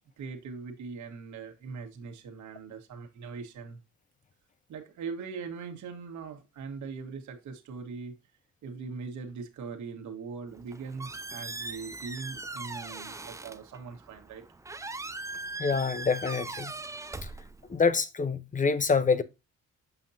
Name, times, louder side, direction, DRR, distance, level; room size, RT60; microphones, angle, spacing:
voice 1, 0.2-3.8 4.7-8.1 8.6-14.4, right 5 dB, 70° right, 1.7 m, -41 dB
Squeak, 10.5-18.0, right 2 dB, 10° right, 0.5 m, -40 dB
voice 2, 15.6-16.7 17.7-19.2, left 5 dB, 25° left, 0.9 m, -26 dB
7.1 x 5.7 x 2.7 m
cardioid pair, 90°, 30 cm